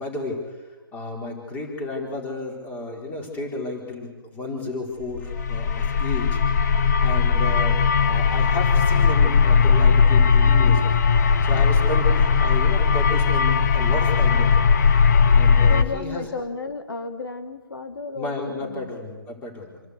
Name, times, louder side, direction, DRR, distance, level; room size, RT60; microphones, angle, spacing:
voice 1, 0.0-6.4 7.0-11.0 11.4-14.7 15.3-16.3 18.1-19.8, left 2 dB, 15° left, 0 dB, 4.2 m, -33 dB
sound 1, 5.2-15.8, left 5 dB, 50° left, 1.4 m, -18 dB
voice 2, 15.7-18.9, left 4 dB, 85° left, 7 dB, 2.1 m, -33 dB
27.0 x 12.5 x 8.2 m, 1.3 s
hypercardioid pair, 155°, 12 cm